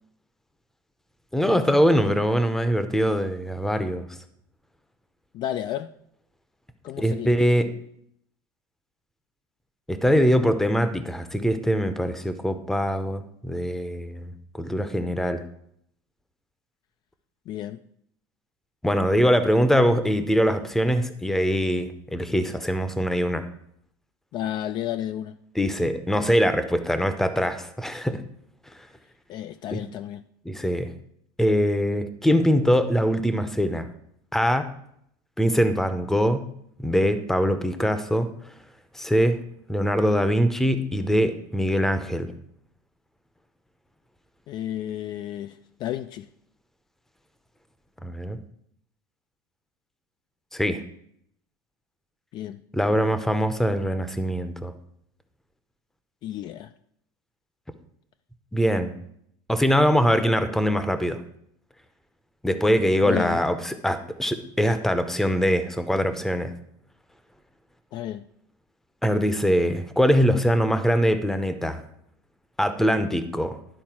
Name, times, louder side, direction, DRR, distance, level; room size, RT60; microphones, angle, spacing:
voice 1, 1.3-4.1 7.0-7.7 9.9-14.3 14.5-15.4 18.8-23.5 25.5-28.2 29.7-29.8 30.5-30.9 31.4-33.9 34.3-34.7 35.4-36.5 36.8-38.3 38.9-39.4 39.7-42.3 48.0-48.4 50.5-50.8 52.7-54.7 58.5-59.0 59.5-61.2 62.4-66.5 69.0-71.8 72.6-73.6, equal, 5° left, 11 dB, 0.7 m, -23 dB
voice 2, 5.3-5.9 6.8-7.3 17.5-17.8 24.3-25.4 29.3-30.2 44.5-46.3 52.3-52.6 56.2-56.7 63.0-63.4 67.9-68.3, left 12 dB, 40° left, 11 dB, 0.3 m, -32 dB
11.0 x 4.2 x 5.9 m, 0.70 s
supercardioid pair, 130°, 11 cm